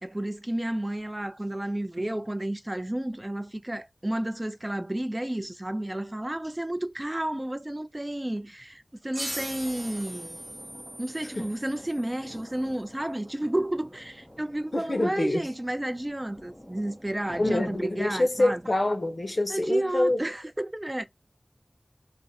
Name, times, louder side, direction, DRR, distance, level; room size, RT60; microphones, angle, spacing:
voice 1, 0.0-10.4 11.0-18.6 19.5-21.0, right 1 dB, 30° right, 0.4 m, -31 dB
sound 1, 9.1-12.4, right 1 dB, 45° right, 0.9 m, -39 dB
sound 2, 9.3-19.5, equal, 5° left, 0.8 m, -48 dB
voice 2, 14.7-15.5 17.3-20.2, left 2 dB, 70° left, 0.6 m, -26 dB
2.4 x 2.1 x 2.7 m
wide cardioid pair, 50°, 0 cm